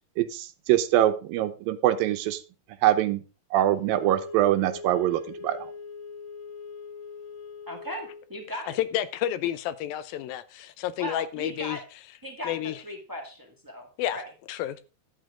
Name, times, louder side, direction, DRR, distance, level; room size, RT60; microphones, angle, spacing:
voice 1, 0.2-2.4 2.8-3.2 3.5-5.7, right 13 dB, 80° right, 2.4 m, -24 dB
Wind instrument woodwind instrument, 3.8-8.3, left 4 dB, 65° left, 3.2 m, -41 dB
voice 2, 7.7-8.8 11.0-11.8 12.2-12.5 12.8-13.9 14.1-14.2, equal, 15° right, 0.8 m, -37 dB
voice 3, 8.8-11.8 12.4-12.8 14.0-14.2 14.5-14.8, left 11 dB, 80° left, 2.4 m, -30 dB
11.5 x 8.2 x 3.8 m
omnidirectional pair, 4.2 m